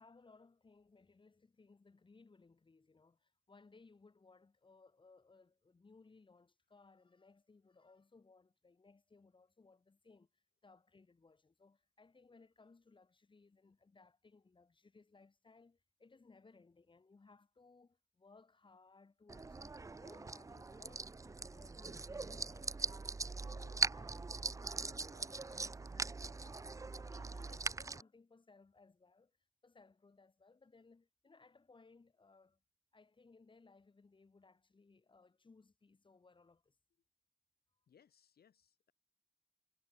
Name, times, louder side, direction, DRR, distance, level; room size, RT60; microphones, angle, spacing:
voice 1, 0.0-23.2 23.5-29.4 29.6-32.6 32.9-36.8, left 3 dB, 30° left, 6.3 m, -64 dB
sound 1, 19.3-28.0, right 3 dB, 20° right, 0.5 m, -41 dB
voice 2, 37.9-38.9, left 8 dB, 80° left, 3.9 m, -71 dB
wide cardioid pair, 135°, 16 cm